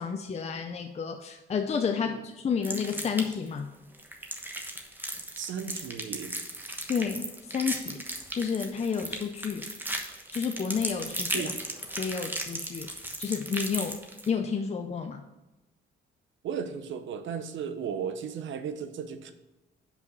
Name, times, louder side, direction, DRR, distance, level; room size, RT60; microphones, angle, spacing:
voice 1, 0.0-3.7 6.9-8.0 8.3-9.7 10.3-11.5 12.0-12.9 13.2-14.0 14.3-15.2, left 6 dB, 35° left, 6 dB, 0.5 m, -30 dB
sound 1, 2.6-3.5 3.9-14.3, right 1 dB, 10° right, 1.1 m, -36 dB
voice 2, 5.4-6.4 11.3-11.6 16.4-19.3, right 7 dB, 70° right, 9 dB, 0.8 m, -35 dB
5.6 x 4.6 x 6.1 m, 1.0 s
cardioid pair, 90°, 20 cm